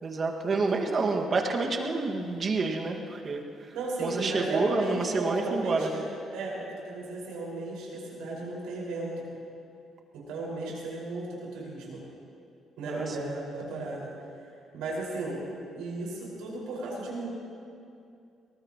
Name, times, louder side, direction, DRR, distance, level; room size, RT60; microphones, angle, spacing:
voice 1, 0.0-3.4 4.0-5.9 12.9-13.1, right 3 dB, 45° right, 2 dB, 1.9 m, -28 dB
voice 2, 3.7-6.1 6.3-9.3 10.1-12.0 12.8-14.1 14.7-15.4 15.7-17.3, right 2 dB, 90° right, -4 dB, 5.3 m, -35 dB
23.5 x 19.5 x 3.1 m, 2.5 s
supercardioid pair, 75°, 0 cm